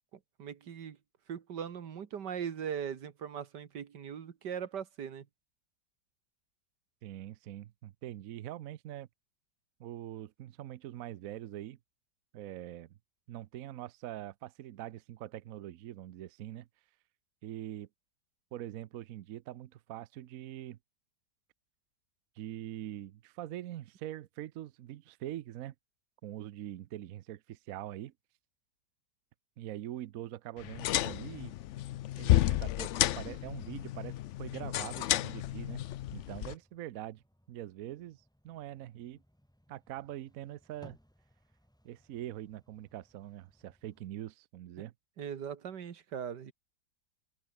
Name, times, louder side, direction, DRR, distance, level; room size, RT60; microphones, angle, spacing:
voice 1, 0.4-1.0 1.3-5.3 45.2-46.5, right 8 dB, 85° right, 2.1 m, -39 dB
voice 2, 7.0-9.1 9.8-11.8 12.3-12.9 13.3-16.7 17.4-17.9 18.5-20.8 22.4-25.7 26.2-28.1 29.6-31.5 32.2-35.8 36.1-37.2 37.5-39.2 39.7-41.0 41.8-44.9, right 13 dB, 65° right, 1.0 m, -43 dB
sound 1, 30.6-36.6, left 14 dB, 90° left, 0.6 m, -31 dB
sound 2, 31.7-44.1, equal, ahead, 5.1 m, -65 dB
open air
omnidirectional pair, 1.8 m